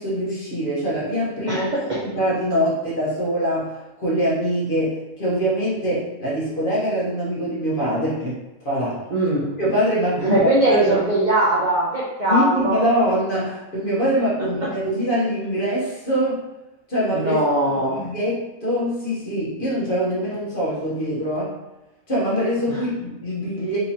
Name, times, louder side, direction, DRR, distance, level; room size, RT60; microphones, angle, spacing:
voice 1, 0.0-1.7 2.0-8.4 8.6-9.0 9.6-11.0 12.2-16.4 16.9-17.3 17.7-21.5 22.1-23.8, equal, 40° left, -7 dB, 0.9 m, -23 dB
voice 2, 1.5-2.0 9.1-9.5 10.2-12.8 17.1-18.0, right 1 dB, 50° right, -6 dB, 0.5 m, -20 dB
3.9 x 2.8 x 2.7 m, 1.0 s
omnidirectional pair, 1.6 m